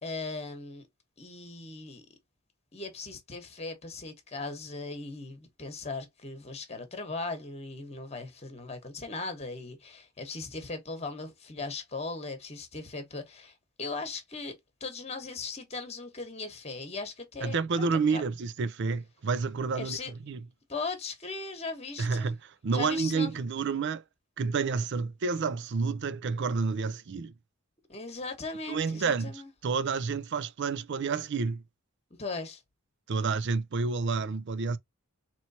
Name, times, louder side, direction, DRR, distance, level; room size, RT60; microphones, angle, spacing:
voice 1, 0.0-0.9 1.2-2.0 2.7-17.9 18.1-18.2 19.7-20.1 20.7-22.4 22.7-23.3 27.9-29.5 32.2-32.6, left 3 dB, 30° left, 1.1 m, -38 dB
voice 2, 17.4-20.4 22.0-24.0 24.4-27.3 28.7-31.6 33.1-34.8, right 4 dB, 55° right, 0.4 m, -29 dB
4.4 x 3.0 x 2.7 m
head